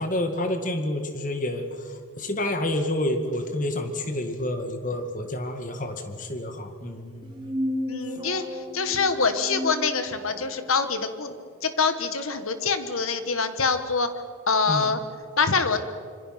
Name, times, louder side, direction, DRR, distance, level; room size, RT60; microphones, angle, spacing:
voice 1, 0.0-7.6 14.7-14.9, left 1 dB, 40° left, 7 dB, 2.1 m, -29 dB
sound 1, 7.2-10.6, left 1 dB, 20° right, 2.6 m, -33 dB
voice 2, 7.9-11.3 11.6-14.1 14.5-15.0 15.4-15.8, left 4 dB, 85° left, 9 dB, 1.8 m, -25 dB
26.0 x 24.5 x 5.9 m, 2.3 s
head